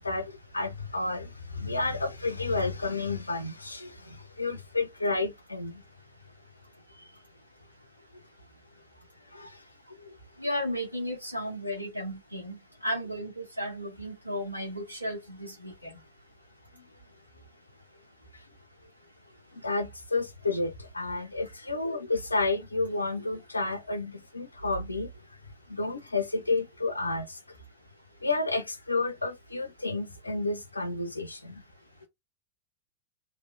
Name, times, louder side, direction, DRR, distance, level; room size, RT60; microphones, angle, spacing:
voice 1, 0.0-5.8 9.3-9.5 19.5-25.1 25.7-27.4 28.2-31.5, left 3 dB, 80° left, 0.6 m, -31 dB
voice 2, 10.4-16.0, equal, 90° right, 1.4 m, -34 dB
2.8 x 2.8 x 2.3 m
figure-of-eight pair, 90°, 0 cm